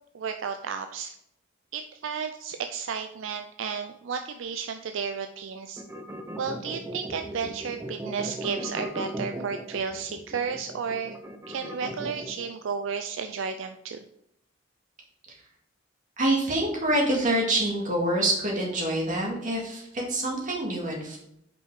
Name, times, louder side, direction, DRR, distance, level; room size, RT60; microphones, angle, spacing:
voice 1, 0.1-1.2 1.7-5.8 6.4-11.1 11.5-14.0, right 6 dB, 70° right, 7 dB, 0.4 m, -33 dB
sound 1, 5.8-12.5, right 1 dB, 15° right, 0.6 m, -37 dB
voice 2, 16.2-21.2, right 1 dB, 45° right, -2 dB, 2.1 m, -26 dB
5.5 x 5.3 x 4.8 m, 0.78 s
head